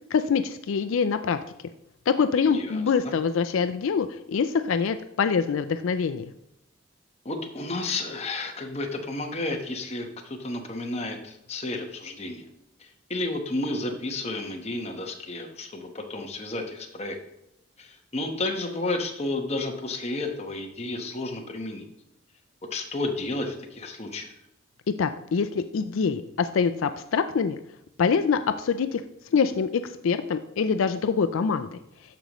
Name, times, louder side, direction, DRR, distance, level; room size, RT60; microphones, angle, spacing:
voice 1, 0.1-1.4 2.1-6.2 25.0-27.6 28.0-29.0 29.3-31.8, left 6 dB, 80° left, 10 dB, 0.4 m, -25 dB
voice 2, 2.5-3.1 7.2-12.4 12.8-17.2 17.8-21.9 22.7-24.3, left 2 dB, 30° left, 2 dB, 1.1 m, -32 dB
13.5 x 5.2 x 3.0 m, 0.83 s
head